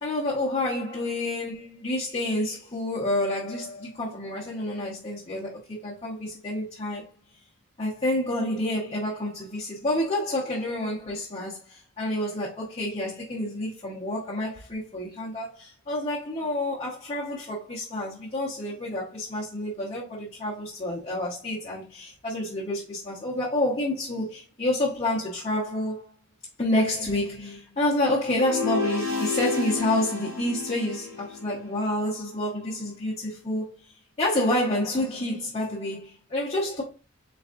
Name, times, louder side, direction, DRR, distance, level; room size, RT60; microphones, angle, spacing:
voice 1, 0.0-7.1 7.8-26.1 26.6-36.8, left 1 dB, 25° left, 0.9 m, -29 dB
sound 1, 28.3-31.5, left 4 dB, 65° right, 2.2 m, -30 dB
4.1 x 4.0 x 2.5 m
head